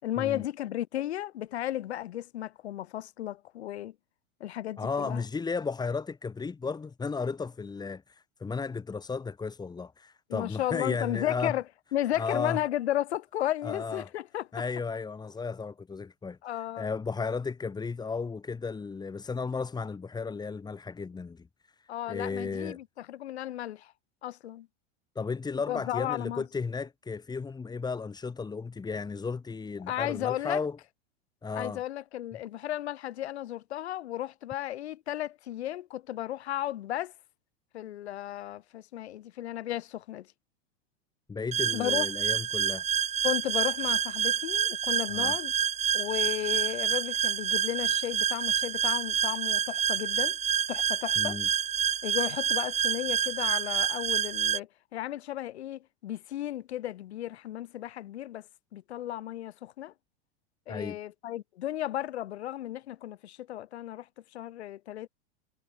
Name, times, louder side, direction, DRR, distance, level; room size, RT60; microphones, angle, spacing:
voice 1, 0.0-3.9 4.4-5.2 10.3-11.6 11.9-14.5 16.4-16.9 21.9-23.9 24.2-24.7 25.7-26.4 29.9-30.6 31.5-37.1 37.7-40.3 41.7-42.1 43.2-45.5 45.9-50.4 50.7-51.4 52.0-58.5 58.7-59.9 60.7-64.1 64.3-65.1, left 13 dB, 85° left, 5.2 m, -34 dB
voice 2, 4.8-11.6 12.2-12.6 13.6-14.1 14.5-21.5 21.8-22.8 25.2-30.8 31.4-31.8 41.3-42.8 45.1-45.4 51.2-51.5 60.7-61.0, left 4 dB, 15° left, 3.4 m, -34 dB
sound 1, 41.5-54.6, right 8 dB, 20° right, 2.0 m, -28 dB
supercardioid pair, 140°, 32 cm